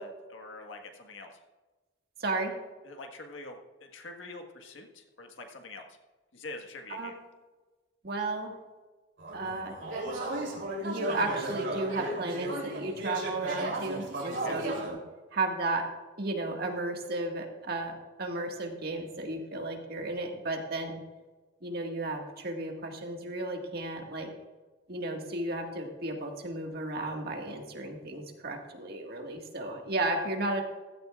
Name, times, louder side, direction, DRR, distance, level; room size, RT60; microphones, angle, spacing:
voice 1, 0.0-1.4 2.8-6.0 6.3-7.1 14.3-14.6, left 2 dB, 85° left, 3 dB, 1.6 m, -45 dB
voice 2, 2.2-2.5 6.9-7.1 8.0-8.5 9.3-9.8 10.8-15.0 15.3-15.9 16.2-17.9 18.2-21.0 21.6-24.3 24.9-30.6, right 2 dB, 55° right, 2 dB, 1.9 m, -34 dB
sound 1, 9.2-14.9, right 1 dB, 75° right, 3.4 m, -34 dB
15.5 x 13.5 x 2.5 m, 1.2 s
head